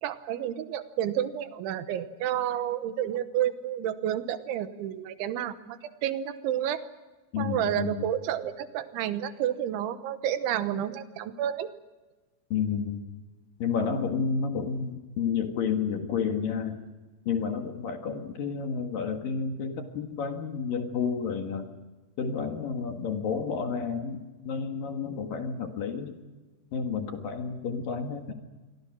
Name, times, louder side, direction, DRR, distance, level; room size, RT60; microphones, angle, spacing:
voice 1, 0.0-6.8 7.4-11.7, right 11 dB, 80° right, 11 dB, 3.5 m, -30 dB
voice 2, 7.3-8.1 12.5-13.0 13.6-16.8 17.3-21.7 22.2-24.2 24.5-26.2 26.7-28.3, left 6 dB, 60° left, 4 dB, 3.0 m, -30 dB
27.5 x 23.5 x 6.2 m, 1.2 s
omnidirectional pair, 5.3 m